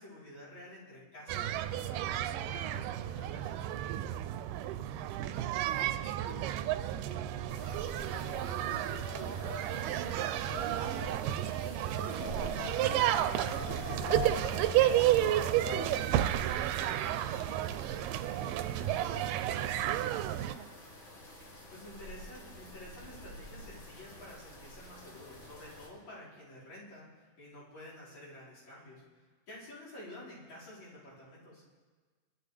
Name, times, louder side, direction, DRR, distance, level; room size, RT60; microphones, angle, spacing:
voice 1, 0.0-3.8 11.2-11.6 21.7-31.6, left 1 dB, 55° left, -7 dB, 6.4 m, -50 dB
sound 1, 1.3-20.6, right 12 dB, 90° right, 2.2 m, -32 dB
voice 2, 5.3-7.4 7.7-8.6 8.8-11.1 11.8-15.2 15.6-20.7, right 6 dB, 65° right, 4 dB, 1.7 m, -49 dB
Wind, 7.3-16.6, left 7 dB, 75° left, 1.8 m, -45 dB
sound 2, 7.5-25.9, equal, 40° left, 3.4 m, -49 dB
22.0 x 13.0 x 3.4 m, 1.4 s
omnidirectional pair, 3.8 m